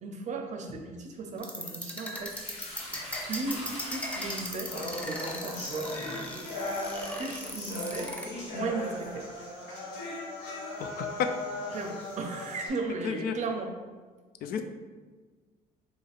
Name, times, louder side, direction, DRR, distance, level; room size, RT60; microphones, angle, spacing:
voice 1, 0.0-2.3 3.2-5.9 7.1-8.1 8.5-9.3 11.7-13.7, right 3 dB, 45° right, 3 dB, 0.6 m, -36 dB
sound 1, 1.4-8.3, equal, 5° left, 0.5 m, -38 dB
Sink (filling or washing) / Liquid, 2.3-9.2, left 1 dB, 40° left, 1.2 m, -45 dB
sound 2, 4.7-12.7, left 1 dB, 80° left, 1.2 m, -37 dB
voice 2, 10.8-11.3 13.0-13.3 14.4-14.6, left 7 dB, 65° left, 7 dB, 0.4 m, -31 dB
3.0 x 2.5 x 4.0 m, 1.4 s
cardioid pair, 110°, 17 cm